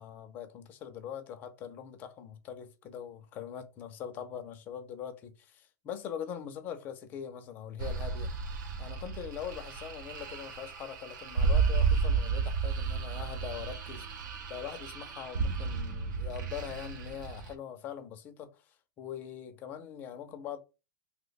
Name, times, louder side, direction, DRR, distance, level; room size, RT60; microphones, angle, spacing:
voice 1, 0.0-8.3 8.8-14.1 14.5-20.6, left 9 dB, 20° left, 0.3 m, -42 dB
sound 1, 7.8-17.5, right 5 dB, 80° right, 0.6 m, -32 dB
2.8 x 2.0 x 3.9 m
supercardioid pair, 175°, 10 cm